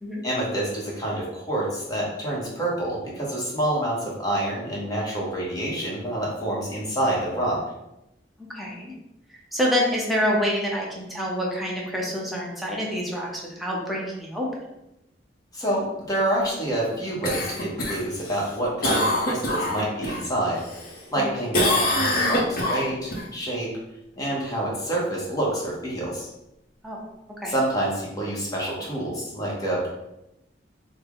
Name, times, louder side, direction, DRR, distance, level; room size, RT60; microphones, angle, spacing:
voice 1, 0.2-7.6 15.5-20.6 21.1-23.7 24.2-26.3 27.5-29.9, right 1 dB, 20° left, -5 dB, 0.9 m, -27 dB
voice 2, 8.5-8.9 9.5-14.5 21.2-21.3 26.8-27.0 27.4-27.5, equal, ahead, -3 dB, 0.7 m, -27 dB
Cough, 17.2-20.2 20.6-21.2 21.5-23.2 27.6-27.7, left 1 dB, 55° left, 0.6 m, -25 dB
3.2 x 2.1 x 3.6 m, 0.89 s
head